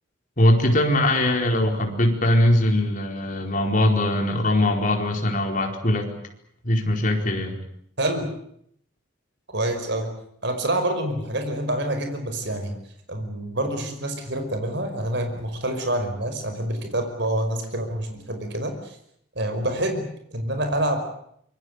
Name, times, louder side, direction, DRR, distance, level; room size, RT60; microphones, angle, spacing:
voice 1, 0.4-6.1 6.6-7.5, left 1 dB, 40° left, 2 dB, 4.6 m, -21 dB
voice 2, 8.0-8.3 9.5-10.1 10.4-12.8 13.1-19.0 19.4-20.0 20.3-21.0, right 1 dB, 55° right, 6 dB, 5.4 m, -27 dB
25.5 x 23.0 x 8.1 m, 0.69 s
head